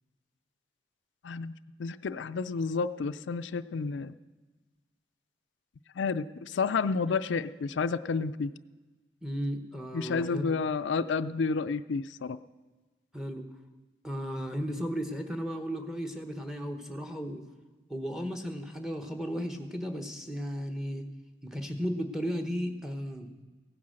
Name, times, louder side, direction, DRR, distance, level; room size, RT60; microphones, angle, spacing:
voice 1, 1.8-4.1 6.0-8.5 9.9-12.4, left 4 dB, 85° left, 12 dB, 0.4 m, -30 dB
voice 2, 9.2-10.6 13.1-13.5 14.0-17.4 17.9-21.1 21.4-23.3, equal, 5° right, 7 dB, 1.0 m, -35 dB
16.5 x 9.6 x 6.4 m, 1.2 s
head